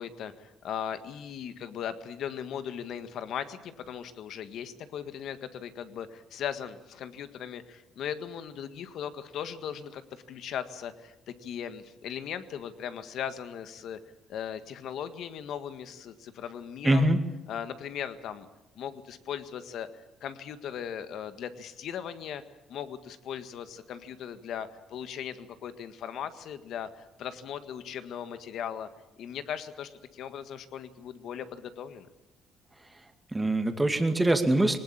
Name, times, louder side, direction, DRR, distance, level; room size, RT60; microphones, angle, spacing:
voice 1, 0.0-14.0 14.3-17.1 17.5-18.5 18.7-22.4 22.7-28.9 29.2-32.1, left 8 dB, 65° left, 11 dB, 1.7 m, -38 dB
voice 2, 16.8-17.2 32.9-33.0 33.3-34.8, right 1 dB, 10° right, 7 dB, 2.2 m, -23 dB
20.5 x 19.5 x 8.7 m, 1.1 s
cardioid pair, 115°, 0 cm